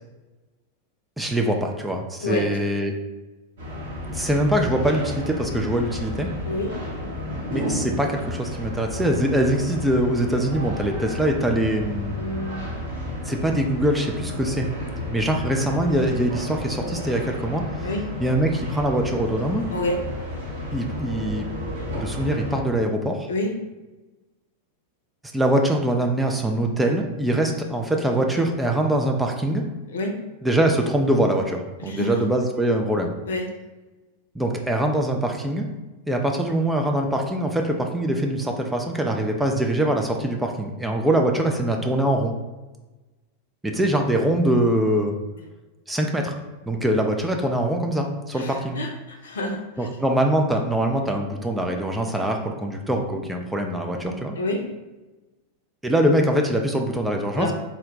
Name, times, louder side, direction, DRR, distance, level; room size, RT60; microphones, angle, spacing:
voice 1, 1.2-2.9 4.1-6.3 7.5-12.2 13.2-14.7 15.1-17.9 18.2-19.7 20.7-21.5 22.0-23.3 25.3-29.6 30.4-33.1 34.4-35.7 36.1-42.3 43.6-45.2 45.9-46.3 46.7-48.8 49.8-54.3 55.8-57.5, right 1 dB, 5° right, 2 dB, 0.4 m, -23 dB
sound 1, 3.6-22.6, left 1 dB, 60° right, 1.1 m, -32 dB
voice 2, 12.2-12.6 17.8-18.0 19.7-20.0 23.3-23.5 29.9-30.2 31.8-32.2 33.2-33.5 48.3-49.9 54.3-54.6 57.4-57.5, left 1 dB, 65° left, 2 dB, 0.6 m, -28 dB
3.5 x 2.2 x 3.8 m, 1.1 s
figure-of-eight pair, 90°, 0 cm